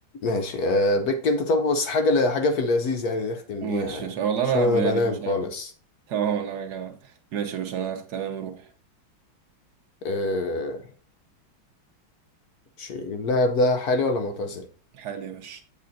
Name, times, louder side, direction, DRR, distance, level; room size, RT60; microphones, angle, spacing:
voice 1, 0.2-4.1 4.5-5.7 10.0-10.8 12.8-14.7, left 2 dB, 65° left, 1.0 m, -24 dB
voice 2, 3.6-5.5 6.1-8.7 14.9-15.6, right 8 dB, 55° right, 1.5 m, -29 dB
8.1 x 6.8 x 2.6 m
omnidirectional pair, 2.2 m